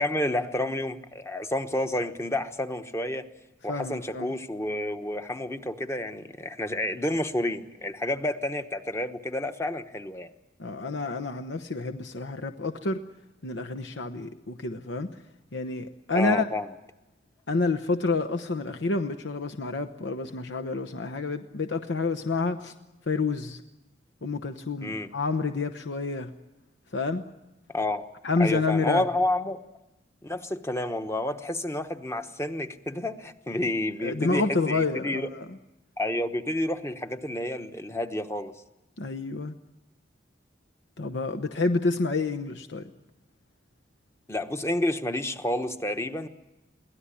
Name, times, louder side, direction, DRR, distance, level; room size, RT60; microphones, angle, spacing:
voice 1, 0.0-3.2 3.6-10.3 16.1-16.7 24.8-25.1 27.7-28.0 28.4-29.6 30.2-35.3 36.0-38.5 44.3-46.3, left 1 dB, 15° left, 8 dB, 1.0 m, -30 dB
voice 2, 3.7-4.3 10.6-13.0 13.4-15.1 15.5-16.5 17.5-22.7 23.1-23.6 24.2-26.3 26.9-27.2 28.2-29.0 34.0-35.6 39.0-39.6 41.0-42.8, left 3 dB, 85° left, 6 dB, 1.0 m, -29 dB
23.5 x 17.0 x 9.9 m, 0.99 s
head